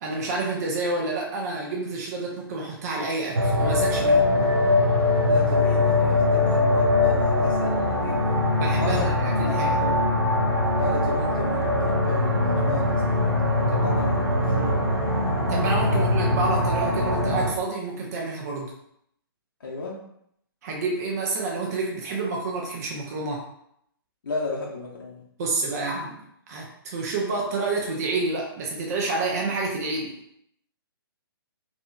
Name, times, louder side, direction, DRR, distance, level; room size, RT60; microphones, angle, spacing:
voice 1, 0.0-4.2 8.6-9.7 15.5-18.7 20.6-23.5 25.4-26.2 26.5-30.2, right 3 dB, 40° right, -1 dB, 0.6 m, -29 dB
sound 1, 3.3-17.5, left 2 dB, 90° right, 0.6 m, -22 dB
voice 2, 5.2-8.4 8.8-9.1 9.5-10.1 10.8-14.8 15.9-16.0 19.6-20.0 24.2-25.2, left 3 dB, 60° left, -4 dB, 0.7 m, -33 dB
2.8 x 2.5 x 2.3 m, 0.72 s
figure-of-eight pair, 130°, 13 cm